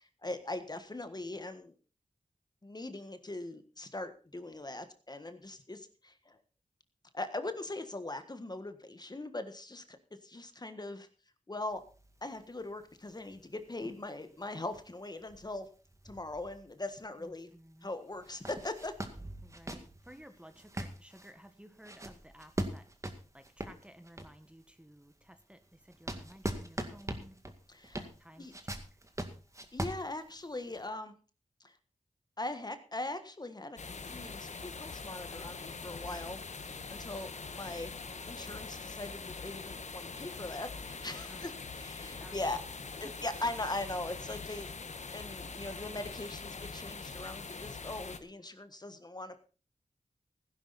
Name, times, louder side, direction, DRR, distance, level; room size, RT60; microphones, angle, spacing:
voice 1, 0.0-1.8 2.6-6.4 7.1-10.0 10.2-11.1 11.5-11.8 12.2-15.7 16.0-17.5 17.8-18.9 27.7-28.1 28.4-28.5 29.7-31.1 31.6-31.8 32.4-37.9 38.3-42.6 43.0-44.7 45.1-49.4, left 2 dB, 35° left, 9 dB, 1.5 m, -40 dB
sound 1, 11.7-17.0 17.4-17.5 18.1-24.5 25.0-30.8, right 1 dB, 25° right, 2.0 m, -42 dB
voice 2, 17.2-17.9 19.4-22.9 23.3-27.4 28.2-29.0 41.3-41.4 42.1-42.6 43.0-43.2, equal, 10° right, 8 dB, 1.5 m, -55 dB
sound 2, 33.8-48.2, left 4 dB, 65° left, 1.3 m, -43 dB
16.5 x 10.5 x 4.2 m, 0.36 s
wide cardioid pair, 70°, 13 cm